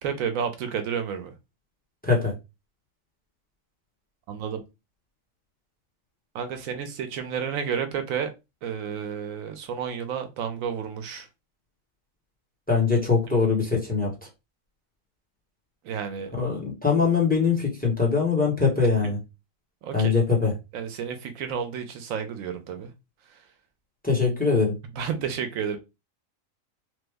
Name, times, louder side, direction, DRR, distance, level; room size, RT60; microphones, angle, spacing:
voice 1, 0.0-1.3 4.3-4.6 6.3-8.3 8.6-11.3 15.8-16.3 19.0-19.1 19.8-20.1 20.7-22.9 25.0-25.8, right 7 dB, 80° right, 1.0 m, -31 dB
voice 2, 2.0-2.3 12.7-14.1 16.4-19.2 19.9-20.5 24.0-24.7, left 5 dB, 5° left, 0.9 m, -22 dB
3.2 x 2.0 x 3.4 m
omnidirectional pair, 1.4 m